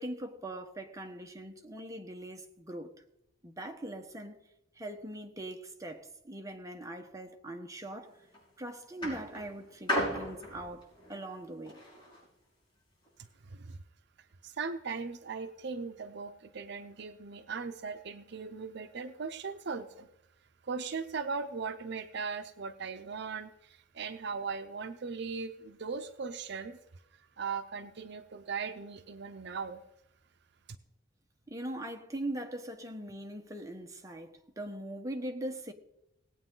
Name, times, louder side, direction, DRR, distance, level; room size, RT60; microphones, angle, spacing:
voice 1, 0.0-2.9 3.4-4.4 4.7-8.3 8.6-11.8 31.5-35.7, right 1 dB, 20° right, 1.2 m, -41 dB
sound 1, 8.0-8.4 9.0-12.2 13.1-13.2, equal, 25° left, 5.8 m, -36 dB
voice 2, 13.4-13.8 14.4-20.1 20.6-26.8 27.4-29.8, right 5 dB, 65° right, 0.6 m, -38 dB
18.5 x 8.8 x 3.8 m
head